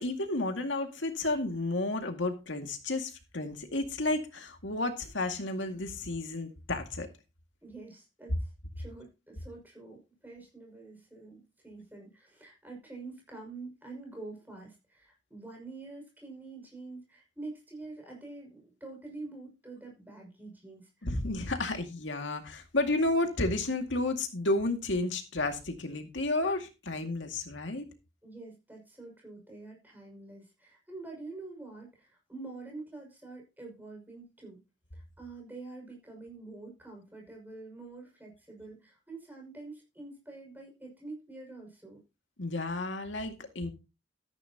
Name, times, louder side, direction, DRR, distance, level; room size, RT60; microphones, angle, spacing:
voice 1, 0.0-7.1 21.0-27.9 42.4-43.7, left 2 dB, 85° left, 2.1 m, -32 dB
voice 2, 7.6-8.5 8.8-21.1 28.2-34.6 34.9-42.0, right 3 dB, 10° right, 5.9 m, -46 dB
13.5 x 10.5 x 2.9 m
head